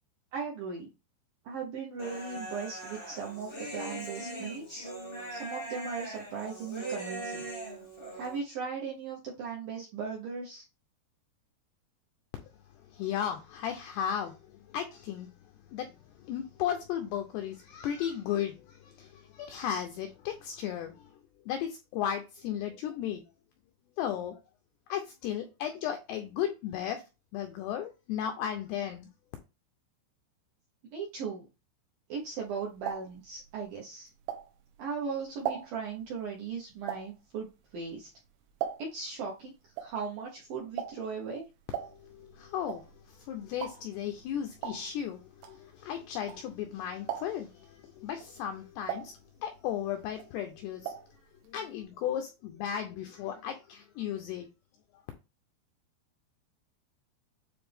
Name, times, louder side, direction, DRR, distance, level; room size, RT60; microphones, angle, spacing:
voice 1, 0.3-0.9 1.4-4.9 5.3-7.5 8.1-10.7 30.9-31.5 32.1-34.1 34.8-38.1 38.8-39.5 39.8-41.5, right 5 dB, 75° right, 2.1 m, -38 dB
Human voice, 2.0-8.4, right 2 dB, 65° left, 0.5 m, -40 dB
voice 2, 12.9-14.4 14.7-15.4 15.7-21.1 21.5-23.2 24.0-24.4 24.9-27.0 27.3-29.1 41.9-49.1 49.4-50.9 51.5-54.5, left 9 dB, 85° left, 2.4 m, -35 dB
sound 1, 32.3-34.8 35.2-39.1 39.4-46.7 47.0-47.6 48.1-49.8 50.1-51.2 51.4-51.5 51.8-51.9, right 10 dB, 90° right, 3.6 m, -40 dB
9.1 x 3.3 x 3.5 m
omnidirectional pair, 5.5 m